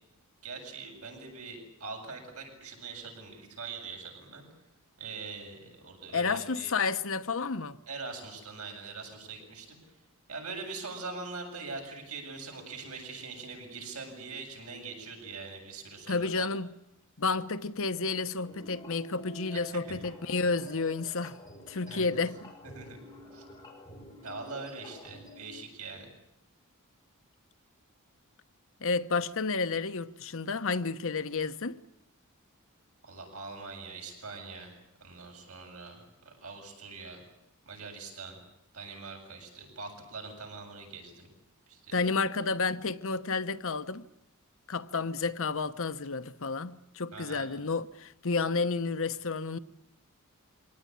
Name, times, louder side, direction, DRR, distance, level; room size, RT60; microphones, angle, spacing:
voice 1, 0.4-4.5 5.0-6.7 7.9-9.8 10.3-16.5 19.5-20.0 21.9-22.1 22.6-23.0 23.3-23.4 24.2-26.1 33.0-34.7 35.0-37.2 37.7-38.4 38.7-41.3 41.7-42.2 47.1-47.5, right 4 dB, 75° right, 7.9 m, -43 dB
voice 2, 6.1-7.8 16.1-16.7 17.2-21.4 21.7-22.5 28.8-31.8 41.9-44.1 44.7-49.6, left 4 dB, 65° left, 1.0 m, -31 dB
sound 1, 18.4-25.5, left 1 dB, 20° left, 6.1 m, -49 dB
25.0 x 18.5 x 10.0 m
head